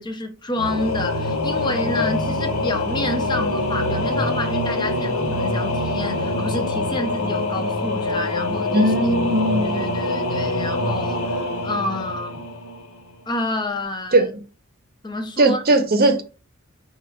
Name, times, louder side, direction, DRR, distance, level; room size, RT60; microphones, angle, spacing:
voice 1, 0.0-8.9 9.6-12.4 13.3-14.3 15.0-15.6, left 1 dB, 20° left, 0.5 m, -29 dB
Singing / Musical instrument, 0.5-13.1, left 2 dB, 75° left, 0.9 m, -24 dB
voice 2, 8.7-9.9 14.1-14.3 15.4-16.2, right 1 dB, 45° right, 0.7 m, -18 dB
4.3 x 2.3 x 4.3 m
head